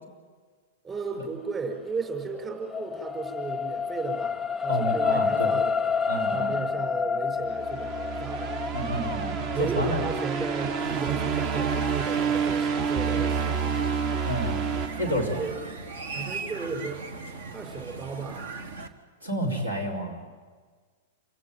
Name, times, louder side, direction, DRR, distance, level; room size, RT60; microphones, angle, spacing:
voice 1, 0.8-5.8 6.3-8.5 9.5-13.8 15.1-15.5 16.1-17.0 17.5-18.5, right 4 dB, 20° right, 3 dB, 5.2 m, -35 dB
sound 1, 1.9-14.4 15.0-15.1, left 6 dB, 10° left, 0.8 m, -30 dB
voice 2, 4.7-5.5 6.1-6.5 8.7-10.0 14.2-14.7 15.0-15.5 19.2-20.2, right 1 dB, 80° right, 1 dB, 4.4 m, -30 dB
sound 2, 7.5-15.8, right 6 dB, 40° right, 1.0 m, -29 dB
sound 3, 10.8-18.9, right 3 dB, 60° right, 1.6 m, -38 dB
28.0 x 16.0 x 9.2 m, 1.5 s
figure-of-eight pair, 100°, 0 cm